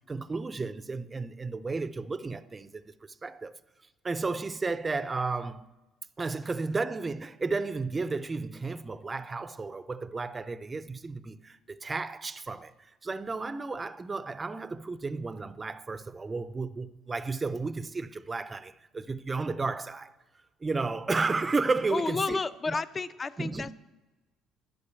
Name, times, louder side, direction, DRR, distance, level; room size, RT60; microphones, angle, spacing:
voice 1, 0.1-3.5 4.0-5.7 6.2-20.1 20.6-22.4 22.7-22.8 23.4-23.7, right 3 dB, 20° right, 0.5 m, -33 dB
voice 2, 21.9-23.7, left 4 dB, 30° left, 0.6 m, -31 dB
11.0 x 8.7 x 8.1 m
cardioid pair, 105°, 0 cm